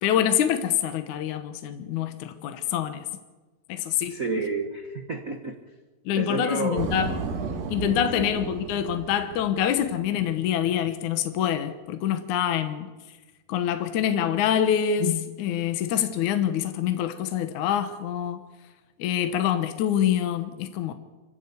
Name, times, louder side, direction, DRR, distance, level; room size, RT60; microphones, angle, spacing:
voice 1, 0.0-3.1 3.7-4.2 6.1-7.1 7.7-12.9 13.5-18.5 19.0-20.9, left 9 dB, 70° left, 2.4 m, -25 dB
voice 2, 4.1-5.5 6.2-6.9 8.1-8.4, right 3 dB, 65° right, 0.8 m, -30 dB
sound 1, 6.8-10.5, right 5 dB, 90° right, 3.5 m, -34 dB
26.0 x 15.5 x 8.3 m
omnidirectional pair, 3.9 m